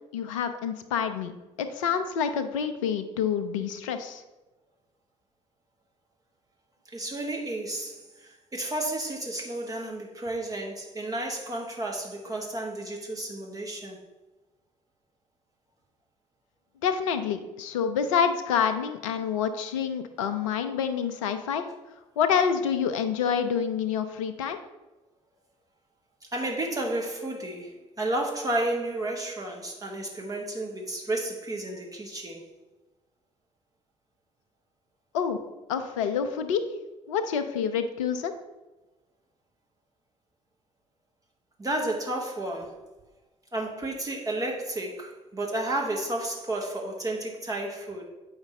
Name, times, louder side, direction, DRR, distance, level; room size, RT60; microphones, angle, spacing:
voice 1, 0.1-1.3 1.6-4.2 16.8-21.7 22.2-24.6 35.1-35.4 35.7-36.6 37.1-38.3, left 7 dB, 70° left, 8 dB, 0.6 m, -27 dB
voice 2, 6.8-14.0 26.3-32.4 41.6-42.8 43.5-48.0, right 1 dB, 20° right, 0 dB, 1.1 m, -32 dB
8.0 x 5.0 x 3.2 m, 1.1 s
figure-of-eight pair, 50°, 17 cm